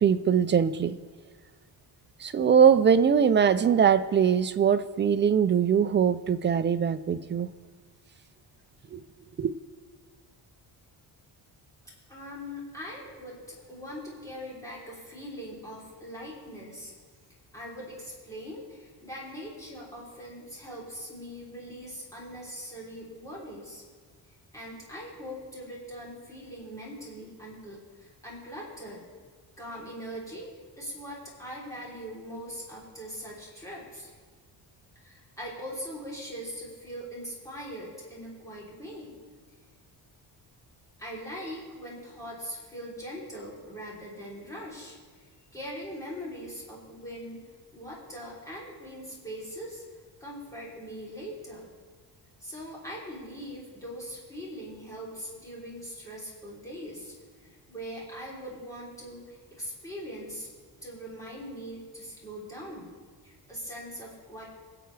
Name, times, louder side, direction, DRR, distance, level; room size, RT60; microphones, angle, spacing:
voice 1, 0.0-1.0 2.2-7.5 8.9-9.0 9.4-9.5, right 7 dB, 30° right, 0.4 m, -22 dB
voice 2, 12.1-16.9 17.5-23.8 24.5-29.0 29.6-30.5 30.8-34.1 34.9-39.1 41.0-45.2 45.5-47.4 47.7-49.8 50.2-51.7 52.4-60.5 60.8-62.9 63.2-64.4, equal, 5° left, 3.2 m, -41 dB
24.0 x 7.9 x 3.3 m
cardioid pair, 155°, 44 cm